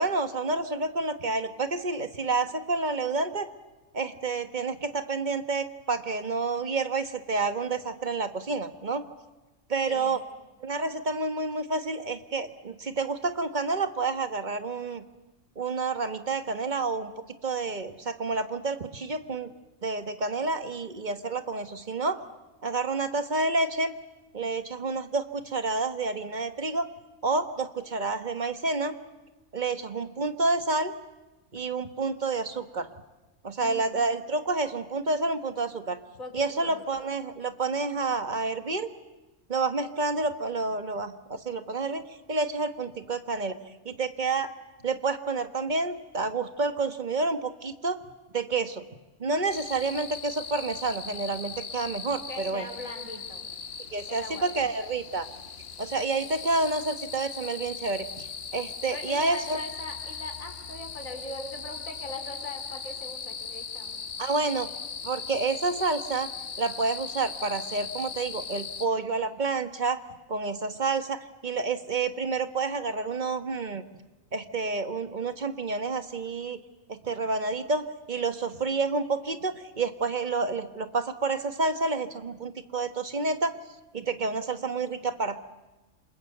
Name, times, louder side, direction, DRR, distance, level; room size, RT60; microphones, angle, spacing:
voice 1, 0.0-3.5 3.9-9.0 9.7-10.2 10.6-15.0 15.6-17.1 17.4-19.5 19.8-22.2 22.6-23.9 24.3-26.9 27.2-29.0 29.5-30.9 31.5-32.9 33.4-36.0 36.3-38.9 39.5-42.0 42.3-43.6 43.8-44.5 44.8-48.0 48.3-48.8 49.2-52.7 53.9-55.3 55.8-58.3 58.5-59.6 64.2-64.7 65.0-66.3 66.6-70.0 70.3-73.8 74.3-76.6 76.9-83.5 83.9-85.4, right 3 dB, 35° right, 9 dB, 1.5 m, -29 dB
voice 2, 9.9-10.2 33.6-34.0 36.2-36.8 52.3-53.5 54.1-54.7 58.9-64.0, left 2 dB, 85° left, 5 dB, 4.5 m, -40 dB
sound 1, 49.5-68.9, left 5 dB, 50° left, 1.3 m, -39 dB
28.0 x 26.5 x 8.1 m, 1.1 s
omnidirectional pair, 1.4 m